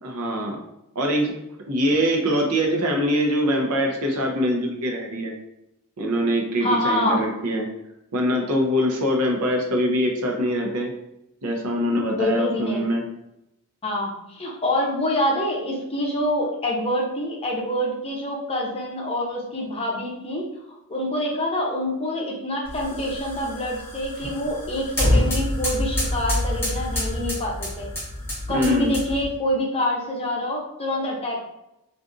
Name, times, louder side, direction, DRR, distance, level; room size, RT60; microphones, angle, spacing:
voice 1, 0.0-0.6 0.9-1.3 1.7-5.3 6.0-7.7 8.1-10.9 11.4-13.0 28.5-28.9, equal, 80° right, 1 dB, 0.7 m, -23 dB
voice 2, 6.6-7.2 12.1-12.9 13.8-20.4 20.9-27.9 28.5-31.4, left 1 dB, 25° left, -2 dB, 0.7 m, -26 dB
sound 1, 22.6-29.3, left 1 dB, 10° left, 1.4 m, -27 dB
3.5 x 2.6 x 2.5 m, 0.86 s
head